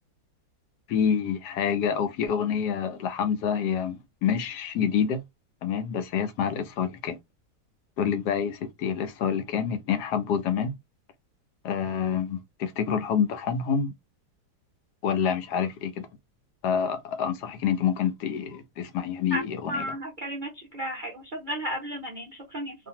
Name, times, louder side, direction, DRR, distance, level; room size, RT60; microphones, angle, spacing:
voice 1, 0.9-5.2 5.6-7.2 8.0-10.8 11.6-13.9 15.0-16.1 16.6-20.0, left 7 dB, 70° left, 1.1 m, -27 dB
voice 2, 19.7-22.2 22.5-22.8, right 1 dB, 65° right, 0.5 m, -33 dB
2.7 x 2.5 x 2.7 m
omnidirectional pair, 1.9 m